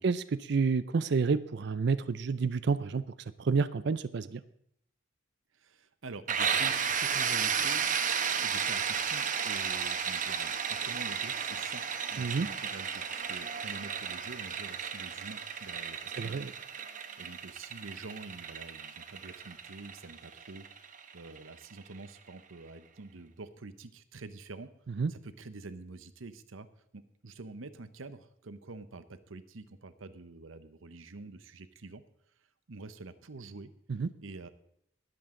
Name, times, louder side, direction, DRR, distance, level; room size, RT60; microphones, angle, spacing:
voice 1, 0.0-3.1 3.4-4.4 12.2-12.5 16.2-16.5 25.0-25.1 33.9-34.1, right 4 dB, 55° right, 14 dB, 0.4 m, -29 dB
voice 2, 5.5-11.8 12.1-24.7 25.1-26.7 26.9-32.0 32.7-33.7 34.2-34.5, right 3 dB, 85° right, 12 dB, 0.8 m, -47 dB
sound 1, 6.3-21.9, right 7 dB, 40° right, 0.9 m, -33 dB
21.5 x 7.8 x 3.8 m, 0.71 s
head